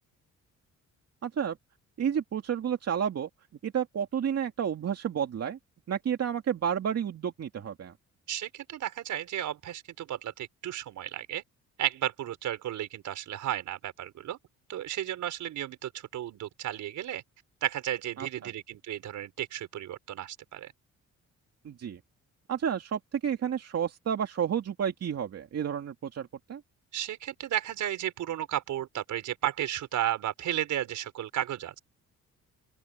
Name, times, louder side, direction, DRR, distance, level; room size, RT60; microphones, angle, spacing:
voice 1, 1.2-1.6 2.0-3.3 3.6-5.6 5.9-7.9 18.2-18.5 21.6-22.0 22.5-26.6, right 8 dB, 55° right, 2.5 m, -31 dB
voice 2, 8.3-11.4 11.8-14.4 14.7-17.2 17.6-20.7 26.9-31.8, right 11 dB, 75° right, 5.1 m, -33 dB
open air
cardioid pair, 90°, 30 cm